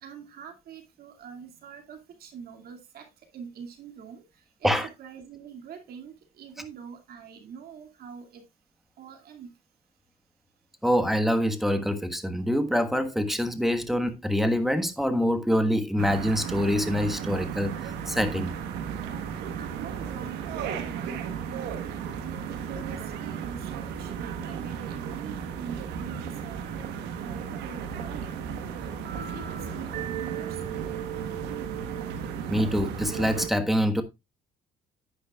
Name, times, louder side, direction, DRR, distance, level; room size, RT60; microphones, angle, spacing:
voice 1, 0.0-3.1 3.3-4.2 4.6-4.7 5.0-8.4 9.0-9.5 19.1-21.7 22.2-26.9 27.2-30.8, right 7 dB, 65° right, 2.4 m, -44 dB
voice 2, 10.8-18.6 32.5-34.0, equal, ahead, 1.4 m, -25 dB
sound 1, 16.0-33.5, right 7 dB, 90° right, 1.4 m, -34 dB
10.5 x 9.6 x 2.4 m
cardioid pair, 110°, 17 cm